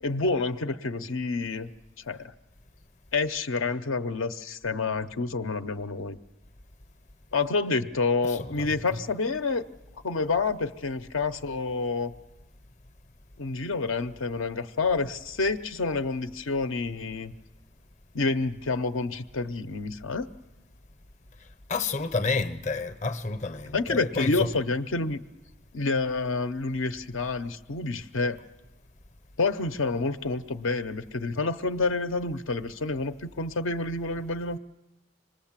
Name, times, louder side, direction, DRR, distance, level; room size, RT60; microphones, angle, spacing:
voice 1, 0.0-1.7 2.1-2.2 3.1-6.2 7.3-9.7 10.0-12.1 13.4-17.3 18.1-20.3 23.7-25.2 25.7-28.4 29.4-34.6, left 3 dB, 70° left, 0.7 m, -28 dB
voice 2, 8.2-8.7 21.7-24.5, left 4 dB, 35° left, 0.8 m, -30 dB
25.5 x 20.5 x 7.4 m
head